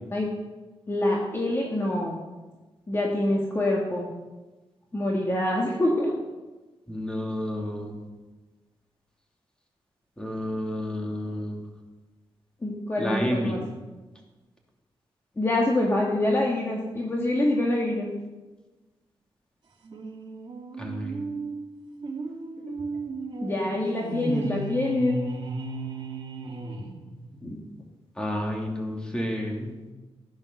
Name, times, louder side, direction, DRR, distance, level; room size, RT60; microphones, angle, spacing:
voice 1, 0.9-2.2 2.9-4.1 4.9-6.2 12.6-13.6 15.4-18.1 23.4-25.2 27.4-27.6, left 1 dB, 25° left, -2 dB, 1.9 m, -25 dB
voice 2, 6.9-7.9 10.2-11.6 13.0-13.6 20.8-21.2 28.2-29.7, equal, 10° left, 0 dB, 2.7 m, -30 dB
sound 1, 19.8-27.4, right 3 dB, 50° right, 2.5 m, -35 dB
15.5 x 10.5 x 6.8 m, 1.2 s
wide cardioid pair, 175°, 10 cm